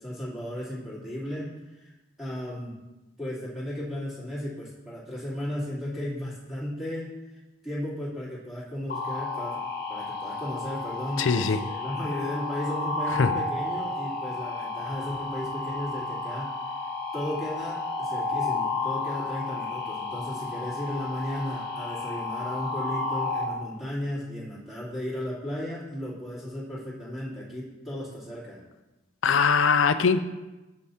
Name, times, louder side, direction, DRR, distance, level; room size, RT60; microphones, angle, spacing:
voice 1, 0.0-1.5 1.8-1.9 2.2-2.8 3.2-9.6 9.9-16.5 17.1-28.6, equal, ahead, -8 dB, 3.0 m, -35 dB
sound 1, 8.9-23.4, left 3 dB, 50° left, 1.3 m, -32 dB
voice 2, 11.2-11.6 13.2-13.3 29.2-30.2, left 5 dB, 75° left, 10 dB, 0.5 m, -21 dB
8.3 x 7.1 x 4.3 m, 1.1 s
head